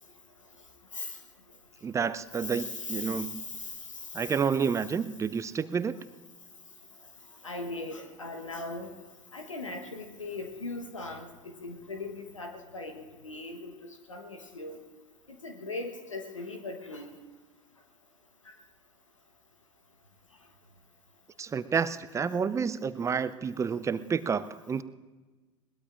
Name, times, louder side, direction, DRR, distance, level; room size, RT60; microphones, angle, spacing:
voice 1, 1.8-3.4 4.1-6.0 21.4-24.8, right 6 dB, 20° right, 15 dB, 0.5 m, -29 dB
voice 2, 2.4-3.7 4.2-4.3 7.4-8.9 9.3-14.8 15.4-17.1 18.5-18.6 21.7-21.8, left 3 dB, 85° left, 5 dB, 1.2 m, -39 dB
21.5 x 19.5 x 2.6 m, 1.3 s
figure-of-eight pair, 80°, 16 cm